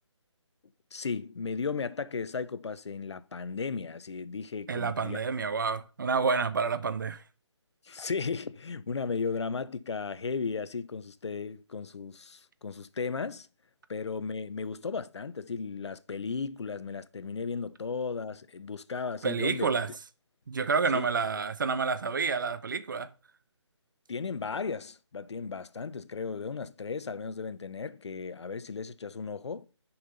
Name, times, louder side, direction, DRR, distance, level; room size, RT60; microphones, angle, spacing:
voice 1, 0.9-5.2 7.8-13.5 13.9-19.7 20.9-21.1 24.1-29.7, left 5 dB, 65° left, 0.7 m, -35 dB
voice 2, 4.7-7.2 19.2-19.9 20.5-23.1, right 5 dB, 45° right, 0.6 m, -29 dB
6.7 x 5.5 x 5.7 m
figure-of-eight pair, 160°, 16 cm